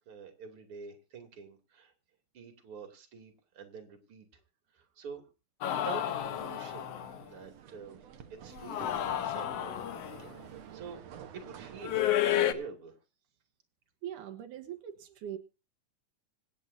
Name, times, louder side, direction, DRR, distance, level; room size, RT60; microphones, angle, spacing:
voice 1, 0.1-1.9 2.3-4.3 4.7-5.2 5.7-6.9 7.2-8.0 8.4-8.9 9.2-9.7 10.2-11.0 11.3-13.0, right 5 dB, 45° right, 5 dB, 3.3 m, -46 dB
sound 1, 5.6-7.2 8.5-10.3 11.8-12.5, left 11 dB, 60° left, 1.9 m, -31 dB
sound 2, 5.7-12.1, right 9 dB, 65° right, 2.2 m, -50 dB
voice 2, 14.0-15.4, right 10 dB, 85° right, 7 dB, 2.8 m, -41 dB
26.0 x 9.7 x 2.7 m, 0.31 s
omnidirectional pair, 3.5 m